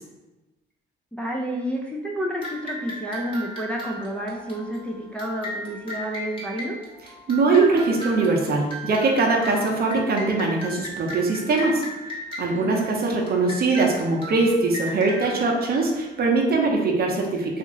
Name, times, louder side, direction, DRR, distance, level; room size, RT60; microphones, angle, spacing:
voice 1, 1.1-6.8 12.6-13.0, equal, 5° left, -2 dB, 0.4 m, -30 dB
sound 1, 2.4-16.5, equal, 25° left, 1.2 m, -37 dB
voice 2, 7.3-11.8 12.4-17.6, right 3 dB, 50° right, 0 dB, 0.7 m, -22 dB
2.8 x 2.5 x 3.7 m, 1.1 s
cardioid pair, 90°, 20 cm